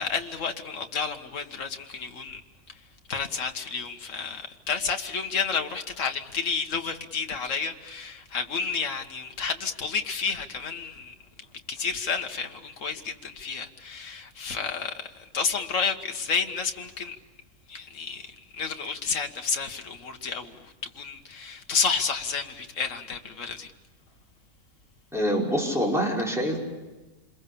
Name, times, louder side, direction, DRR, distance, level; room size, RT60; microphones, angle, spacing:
voice 1, 0.0-2.4 3.1-11.1 11.7-17.2 17.7-20.6 21.0-23.7, left 5 dB, 60° left, 1.8 m, -31 dB
voice 2, 25.1-26.6, equal, ahead, 5.3 m, -25 dB
28.0 x 22.0 x 7.0 m
omnidirectional pair, 1.5 m